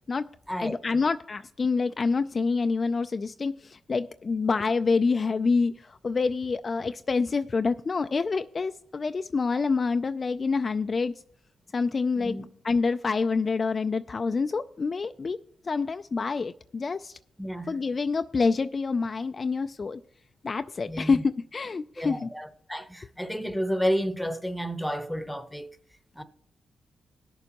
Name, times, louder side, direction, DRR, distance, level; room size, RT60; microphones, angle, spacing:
voice 1, 0.6-11.1 11.7-12.3 12.6-15.4 15.6-17.2 17.7-20.0 20.4-22.3, left 4 dB, 40° left, 0.3 m, -27 dB
voice 2, 17.4-17.8 20.9-21.2 22.0-25.7 26.1-26.2, equal, ahead, 0.9 m, -31 dB
19.0 x 6.9 x 3.0 m
cardioid pair, 70°, 0 cm